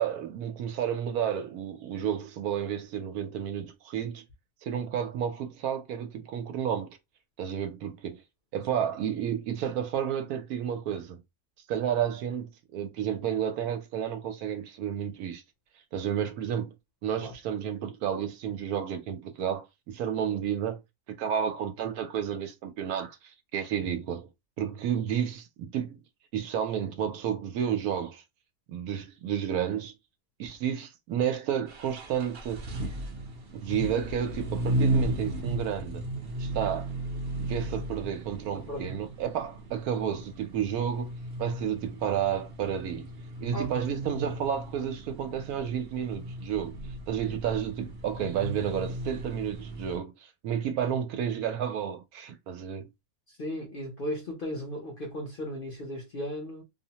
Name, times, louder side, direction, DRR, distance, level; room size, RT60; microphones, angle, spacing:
voice 1, 0.0-4.2 4.6-7.0 7.4-8.2 8.5-11.2 11.7-15.4 15.9-16.7 17.0-20.8 21.2-23.2 23.5-24.3 24.6-26.0 26.3-28.2 28.7-29.9 30.4-32.7 33.5-36.0 36.4-36.9 37.4-41.1 41.4-43.1 43.4-46.8 47.1-52.9, right 9 dB, 85° right, 1.1 m, -31 dB
sound 1, 31.7-50.0, right 1 dB, 55° right, 0.7 m, -35 dB
voice 2, 38.5-39.0 43.5-43.7 47.3-47.4 53.3-56.6, equal, 50° left, 0.7 m, -36 dB
2.7 x 2.1 x 2.8 m
omnidirectional pair, 1.6 m